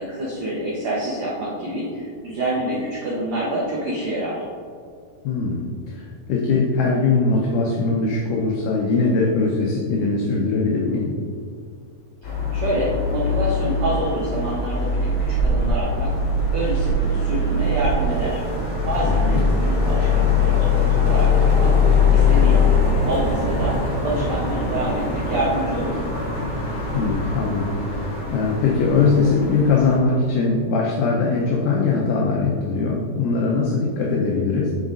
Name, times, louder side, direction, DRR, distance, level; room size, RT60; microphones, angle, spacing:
voice 1, 0.0-4.4 12.5-16.1 16.5-18.4 18.9-21.7 22.1-22.6 23.1-23.7 24.0-26.0, right 1 dB, 75° right, -6 dB, 1.5 m, -27 dB
voice 2, 5.2-11.1 19.0-19.4 26.9-34.7, left 4 dB, 80° left, -2 dB, 1.9 m, -21 dB
sound 1, 12.2-30.0, left 3 dB, 40° left, 1.7 m, -21 dB
9.1 x 5.9 x 2.5 m, 2.3 s
omnidirectional pair, 4.4 m